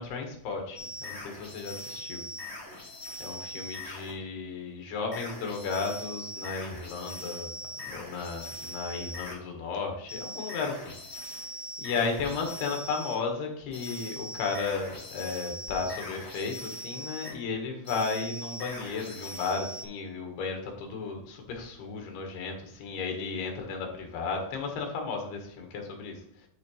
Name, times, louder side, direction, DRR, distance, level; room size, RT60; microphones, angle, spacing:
voice 1, 0.0-2.2 3.2-7.5 7.8-10.9 11.8-26.2, left 4 dB, 80° left, 2 dB, 3.5 m, -34 dB
sound 1, 0.7-4.2 5.1-9.4 10.1-13.2 13.7-17.3 17.8-19.8, equal, 40° left, 0.9 m, -41 dB
12.0 x 4.7 x 3.2 m, 0.68 s
omnidirectional pair, 4.6 m